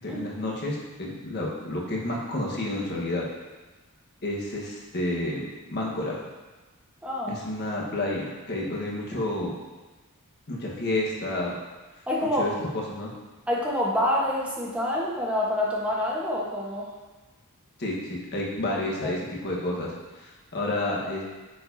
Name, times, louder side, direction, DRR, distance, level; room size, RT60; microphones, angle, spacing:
voice 1, 0.0-3.3 4.2-6.2 7.3-9.5 10.5-11.5 12.4-13.1 17.8-21.2, left 1 dB, 50° left, -3 dB, 1.3 m, -30 dB
voice 2, 7.0-7.4 12.1-12.5 13.5-16.9 18.7-19.1, left 1 dB, 5° right, -5 dB, 1.2 m, -27 dB
9.0 x 4.6 x 2.7 m, 1.2 s
head